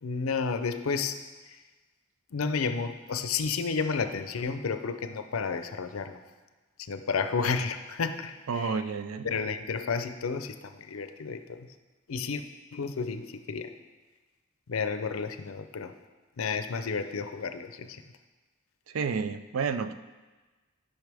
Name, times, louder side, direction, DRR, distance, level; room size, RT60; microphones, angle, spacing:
voice 1, 0.0-1.6 2.3-6.2 6.8-8.8 9.2-11.7 12.1-12.4 12.7-13.7 14.7-15.9 16.4-18.0, left 5 dB, 80° left, 10 dB, 0.5 m, -32 dB
voice 2, 8.5-9.3 18.9-19.9, right 5 dB, 75° right, 11 dB, 0.4 m, -30 dB
12.5 x 5.6 x 3.4 m, 1.3 s
head